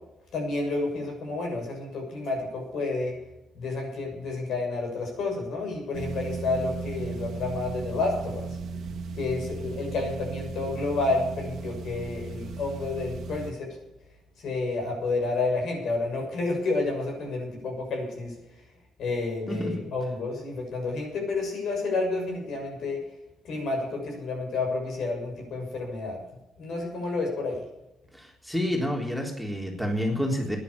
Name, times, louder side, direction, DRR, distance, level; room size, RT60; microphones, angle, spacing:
voice 1, 0.3-3.1 3.5-8.6 9.1-13.7 14.4-18.3 19.0-23.0 23.4-26.2 26.6-27.6, left 3 dB, 70° left, 2 dB, 6.8 m, -30 dB
sound 1, 5.9-13.5, right 4 dB, 70° right, 1.6 m, -36 dB
voice 2, 19.5-19.9 28.1-30.6, equal, ahead, 1 dB, 3.6 m, -29 dB
12.5 x 10.5 x 8.6 m, 0.92 s
cardioid pair, 90°, 0 cm